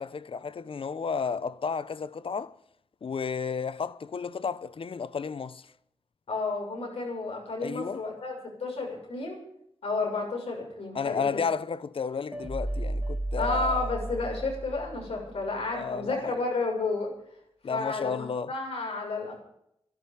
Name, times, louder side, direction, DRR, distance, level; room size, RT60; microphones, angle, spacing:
voice 1, 0.0-2.5 3.0-5.6 7.6-8.0 10.9-13.9 15.7-16.3 17.6-18.5, left 5 dB, 65° left, 0.8 m, -32 dB
voice 2, 6.3-9.4 9.8-11.4 13.4-17.1 17.6-19.4, left 3 dB, 85° left, 6.8 m, -31 dB
sound 1, 12.3-15.5, right 1 dB, 10° right, 1.6 m, -34 dB
13.5 x 12.0 x 8.9 m
cardioid pair, 60°, 10 cm